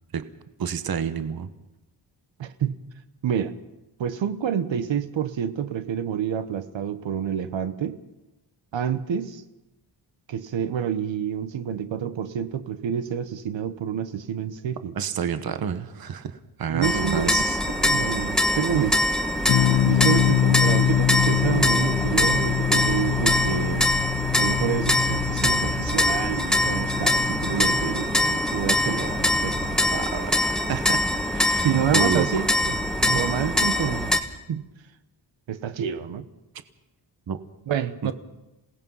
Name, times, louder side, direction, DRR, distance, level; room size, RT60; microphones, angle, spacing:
voice 1, 0.6-1.5 14.9-17.6 29.9-31.0 31.3-31.7 31.9-32.4 37.3-37.4, right 7 dB, 50° right, 10 dB, 1.2 m, -29 dB
voice 2, 2.4-2.8 3.2-3.6 4.0-8.0 8.7-9.4 10.3-14.9 16.7-17.4 17.8-19.2 19.8-23.9 24.4-29.9 31.6-34.1 34.5-34.7 35.5-36.3 37.7-38.1, right 9 dB, 80° right, 10 dB, 1.2 m, -28 dB
sound 1, 16.8-34.2, left 1 dB, ahead, 1.4 m, -24 dB
sound 2, 19.5-30.0, left 11 dB, 65° left, 0.8 m, -26 dB
27.5 x 18.0 x 5.6 m, 0.99 s
wide cardioid pair, 140°, 45 cm